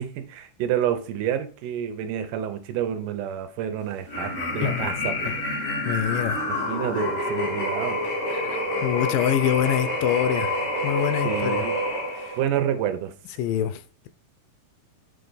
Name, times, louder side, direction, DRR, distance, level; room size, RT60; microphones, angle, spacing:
voice 1, 0.0-5.5 6.5-8.0 11.2-11.8 12.4-13.1, right 10 dB, 80° right, 2.2 m, -29 dB
sound 1, 4.1-12.4, left 1 dB, 60° left, 4.0 m, -27 dB
voice 2, 4.6-5.3 5.9-6.4 8.3-8.4 8.8-10.5 10.8-11.7 12.2-12.3 13.4-13.8, left 11 dB, 90° left, 2.2 m, -25 dB
8.6 x 3.3 x 4.0 m
omnidirectional pair, 3.8 m